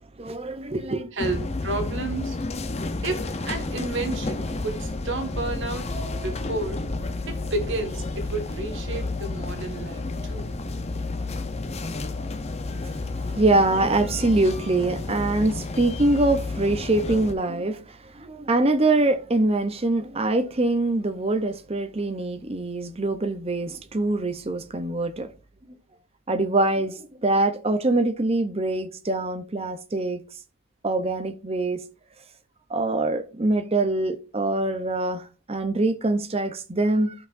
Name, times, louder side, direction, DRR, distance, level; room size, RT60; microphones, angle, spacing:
voice 1, 0.2-1.1 12.8-25.3 26.3-30.2 30.8-31.8 32.7-37.1, right 2 dB, 25° right, 0.7 m, -24 dB
voice 2, 1.1-2.4 3.0-6.8 7.3-10.5, right 2 dB, 55° right, 1.6 m, -31 dB
sound 1, 1.2-17.3, left 2 dB, 30° left, 0.7 m, -31 dB
12.5 x 5.7 x 2.6 m
head